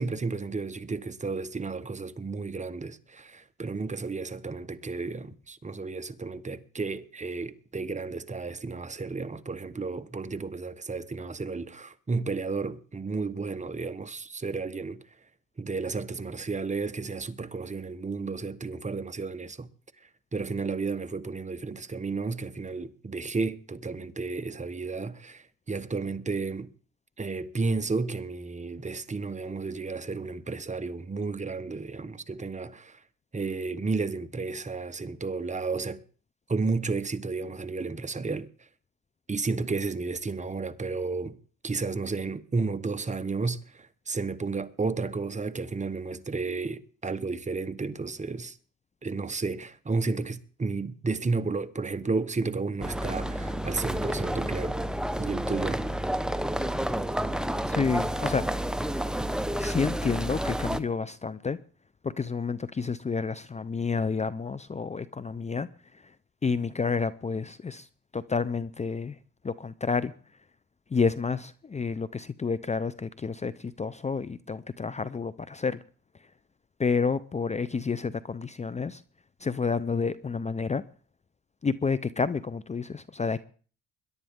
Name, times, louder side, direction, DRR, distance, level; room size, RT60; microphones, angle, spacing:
voice 1, 0.0-15.0 15.6-19.7 20.3-26.7 27.2-33.0 33.3-36.0 36.5-38.5 39.3-41.4 41.6-48.6 49.0-54.8 55.2-55.8, right 4 dB, 25° right, 1.1 m, -32 dB
sound 1, 52.8-60.8, right 1 dB, ahead, 1.0 m, -30 dB
voice 2, 57.6-58.5 59.6-61.6 62.0-66.1 66.4-67.9 68.1-69.2 69.4-70.1 70.9-75.8 76.8-79.0 79.4-80.8 81.6-83.4, left 5 dB, 25° left, 0.6 m, -30 dB
21.5 x 11.5 x 3.6 m
cardioid pair, 90°, 30 cm